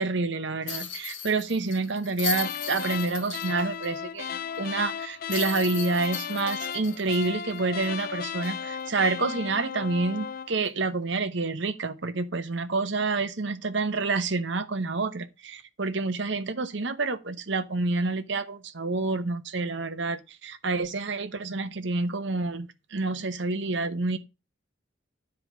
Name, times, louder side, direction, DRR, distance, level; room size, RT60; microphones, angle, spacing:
voice 1, 0.0-24.2, right 3 dB, 60° right, 1.0 m, -28 dB
sound 1, 0.7-3.9 4.2-4.3 5.3-8.0 8.4-8.5 10.6-10.8, left 8 dB, 65° left, 2.2 m, -37 dB
sound 2, 2.3-10.6, left 7 dB, 45° left, 0.4 m, -35 dB
10.5 x 4.8 x 6.0 m
head